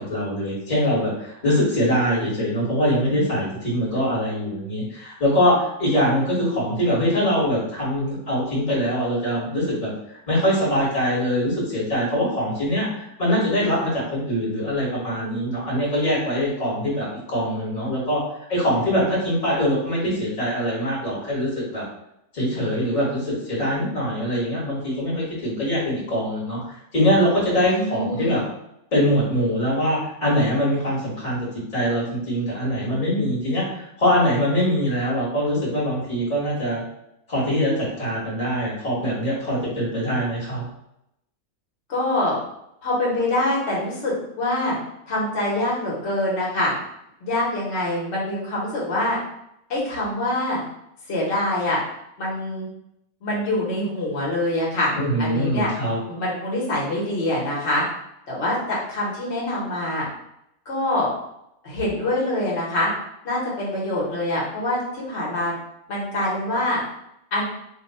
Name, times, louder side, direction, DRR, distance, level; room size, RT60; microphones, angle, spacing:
voice 1, 0.0-9.9 10.3-18.2 18.5-21.8 22.3-26.6 26.9-28.4 28.9-31.5 31.7-36.8 37.3-40.6 54.9-56.0, equal, 30° left, -6 dB, 1.4 m, -23 dB
voice 2, 27.7-28.4 41.9-42.3 42.8-44.8 45.1-46.7 47.2-49.2 49.7-50.6 51.1-51.8 52.2-52.7 53.2-54.9 55.2-55.7 56.0-57.8 58.3-60.1 60.6-61.1 61.6-62.9 63.2-65.5 65.9-66.8 67.3-67.4, left 1 dB, 50° left, -5 dB, 1.3 m, -24 dB
2.9 x 2.2 x 4.1 m, 0.80 s
omnidirectional pair, 1.6 m